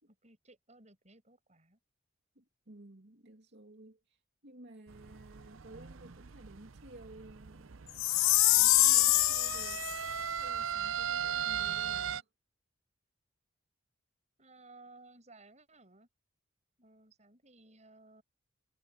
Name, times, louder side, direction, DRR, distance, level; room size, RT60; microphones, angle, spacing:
voice 1, 0.2-1.8 14.4-16.1 16.8-18.2, right 2 dB, 35° right, 6.4 m, -58 dB
voice 2, 2.4-7.9 8.5-9.8 10.4-12.3, right 1 dB, 60° right, 2.8 m, -54 dB
sound 1, 4.9-12.2, right 8 dB, 80° right, 0.7 m, -38 dB
Chime, 8.0-10.0, left 20 dB, 90° left, 0.4 m, -25 dB
head